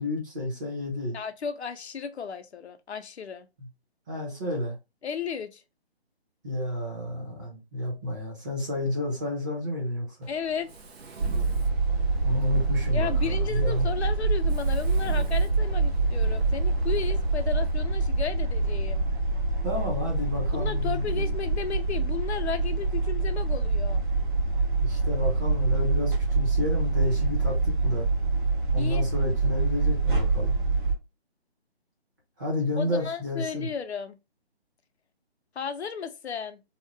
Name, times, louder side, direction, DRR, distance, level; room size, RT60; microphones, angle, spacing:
voice 1, 0.0-1.2 3.6-3.7 4.1-4.7 6.4-10.3 12.2-13.9 19.6-21.3 24.8-28.1 28.7-30.6 32.4-33.7, left 1 dB, 20° right, 0.7 m, -30 dB
voice 2, 1.1-3.5 5.0-5.6 10.3-10.7 12.9-19.1 20.5-24.0 28.8-29.1 32.8-34.2 35.6-36.6, left 6 dB, 80° left, 0.6 m, -34 dB
Mechanisms, 10.2-17.8, right 4 dB, 70° right, 0.7 m, -47 dB
sound 1, 11.2-30.9, right 3 dB, 50° right, 1.1 m, -25 dB
2.8 x 2.1 x 2.7 m
figure-of-eight pair, 155°, 32 cm